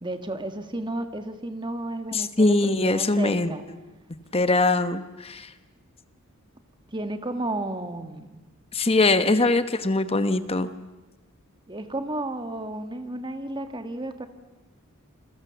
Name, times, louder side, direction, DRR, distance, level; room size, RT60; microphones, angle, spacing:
voice 1, 0.0-3.6 6.9-8.4 9.3-9.6 11.7-14.3, right 2 dB, 20° right, 7 dB, 1.7 m, -33 dB
voice 2, 2.1-3.5 4.3-5.5 8.7-10.7, left 2 dB, 25° left, 11 dB, 1.1 m, -22 dB
29.0 x 22.5 x 7.1 m, 1.1 s
head